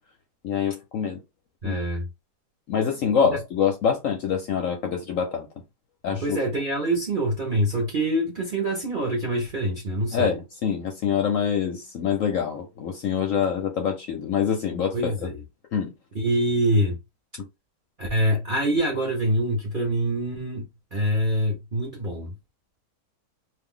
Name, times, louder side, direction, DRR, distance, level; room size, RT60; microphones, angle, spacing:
voice 1, 0.4-1.2 1.6-1.8 2.7-5.5 6.0-6.4 10.1-15.3 15.7-15.9, left 7 dB, 65° left, 0.8 m, -25 dB
voice 2, 1.6-2.1 3.3-3.4 6.1-10.4 14.9-15.4 16.1-17.0 18.0-22.3, right 1 dB, 45° right, 0.7 m, -25 dB
2.6 x 2.3 x 3.7 m
omnidirectional pair, 1.8 m